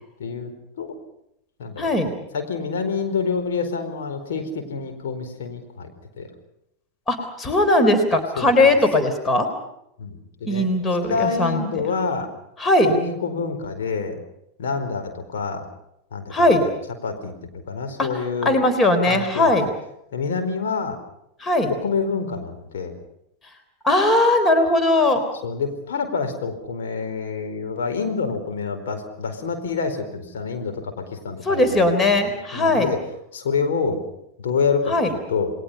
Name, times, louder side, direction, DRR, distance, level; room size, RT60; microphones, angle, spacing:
voice 1, 0.2-0.5 0.8-1.0 1.6-1.9 2.3-5.9 6.2-6.3 8.4-8.5 10.0-10.7 11.1-12.3 12.8-14.2 14.6-15.7 16.1-16.6 17.0-18.6 19.1-19.6 20.1-21.0 21.7-22.9 25.4-33.0 33.3-34.0 34.4-35.5, left 5 dB, 60° left, 5 dB, 4.5 m, -27 dB
voice 2, 1.8-2.1 7.1-9.5 10.4-11.6 12.6-12.9 16.3-16.6 18.0-18.1 18.5-19.7 21.4-21.7 23.8-25.2 31.4-32.9 34.9-35.1, left 2 dB, 20° left, 8 dB, 3.8 m, -19 dB
29.5 x 21.0 x 5.7 m, 0.79 s
figure-of-eight pair, 90°, 0 cm